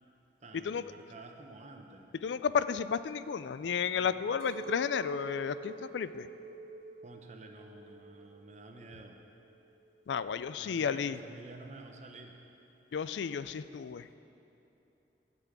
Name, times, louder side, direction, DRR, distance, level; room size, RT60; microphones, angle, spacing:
voice 1, 0.4-2.1 3.9-4.1 7.0-9.2 10.6-12.4, right 2 dB, 40° right, 3 dB, 1.0 m, -50 dB
voice 2, 2.2-6.3 10.1-11.2 12.9-14.1, left 6 dB, 85° left, 14 dB, 0.4 m, -32 dB
Chink clink, 4.4-8.8 9.0-9.8, right 3 dB, 65° right, 2.4 m, -46 dB
12.5 x 6.0 x 8.2 m, 2.9 s
head